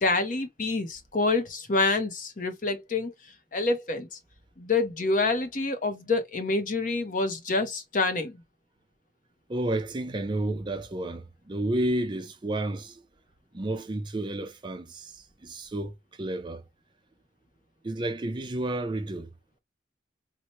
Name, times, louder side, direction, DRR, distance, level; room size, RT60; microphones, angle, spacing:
voice 1, 0.0-3.1 3.5-4.2 4.6-8.4, left 3 dB, 45° left, 0.7 m, -27 dB
voice 2, 9.5-13.0 13.5-16.6 17.8-19.3, right 1 dB, 25° right, 0.4 m, -31 dB
4.3 x 2.1 x 2.9 m
head